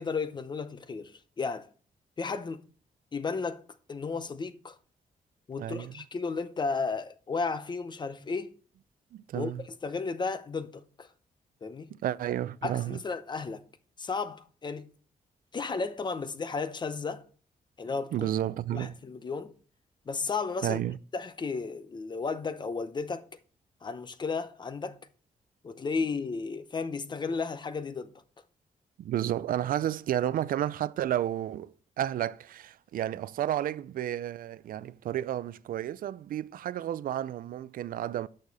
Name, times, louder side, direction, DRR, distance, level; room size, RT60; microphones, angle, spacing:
voice 1, 0.0-1.7 2.2-2.6 3.1-3.6 3.9-4.8 5.5-8.5 9.3-9.5 9.8-11.1 11.6-12.0 12.6-13.6 14.0-14.9 15.5-17.2 17.8-18.3 18.7-19.5 20.1-20.8 21.1-23.3 23.8-25.0 25.6-28.1, left 4 dB, 30° left, 0.7 m, -33 dB
voice 2, 5.6-5.9 9.1-9.6 12.0-13.0 18.1-18.9 20.6-21.0 29.0-38.3, right 12 dB, 70° right, 0.4 m, -31 dB
8.6 x 6.4 x 4.0 m
wide cardioid pair, 145°, 15 cm